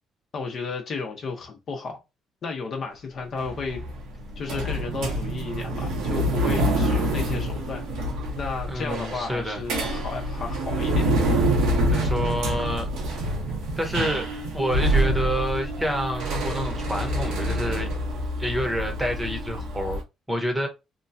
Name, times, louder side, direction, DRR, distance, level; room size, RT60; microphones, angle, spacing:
voice 1, 0.3-2.0 2.4-3.8 4.4-7.8 8.4-11.1, left 4 dB, 50° left, 0.9 m, -33 dB
sound 1, 3.4-20.0, right 1 dB, 85° right, 1.0 m, -26 dB
voice 2, 8.7-9.6 11.9-12.9 13.8-14.3 14.5-17.9 18.4-20.0 20.3-20.7, equal, 10° right, 1.0 m, -28 dB
3.0 x 2.3 x 2.6 m
cardioid pair, 100°, 0 cm